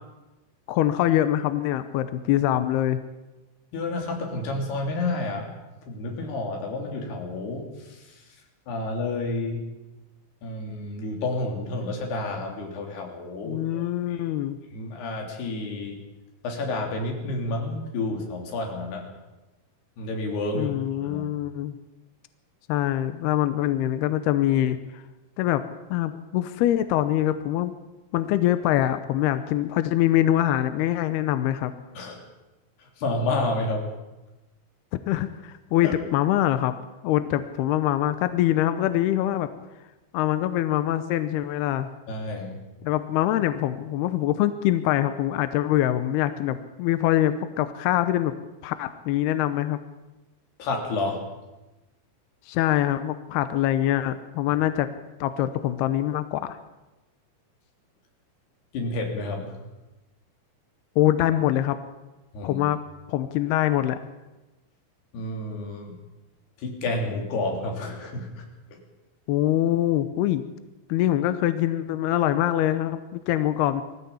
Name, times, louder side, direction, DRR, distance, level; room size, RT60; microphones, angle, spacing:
voice 1, 0.7-3.0 13.4-14.6 20.5-21.7 22.7-25.0 25.4-25.6 25.9-27.7 28.1-31.7 34.9-36.7 37.0-39.5 40.1-41.9 42.8-48.3 48.6-49.8 52.5-54.9 55.2-56.6 61.0-61.8 62.4-62.8 63.1-64.0 69.3-70.4 70.9-73.8, left 13 dB, 80° left, 11 dB, 2.4 m, -24 dB
voice 2, 3.7-5.5 5.9-8.3 8.7-9.7 10.4-14.2 14.7-16.0 16.4-19.1 20.0-21.3 31.9-32.2 32.8-33.9 35.8-35.9 42.1-42.6 50.6-51.2 58.7-59.5 62.3-62.6 65.1-65.9 66.6-68.4, left 2 dB, 60° left, 2 dB, 5.0 m, -30 dB
21.0 x 15.0 x 8.6 m, 1.1 s
omnidirectional pair, 5.5 m